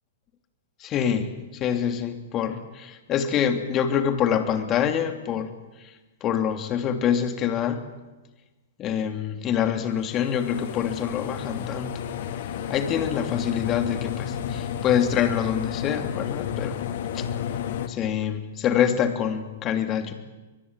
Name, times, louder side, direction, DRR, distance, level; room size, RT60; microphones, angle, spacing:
voice 1, 0.8-5.5 5.8-5.9 6.2-7.8 8.8-11.9 12.7-16.8 17.1-17.2 17.9-20.1, left 8 dB, 30° left, 8 dB, 2.8 m, -25 dB
sound 1, 10.1-17.9, left 8 dB, 55° left, 2.3 m, -32 dB
23.0 x 22.5 x 8.9 m, 1.2 s
figure-of-eight pair, 110°, 0 cm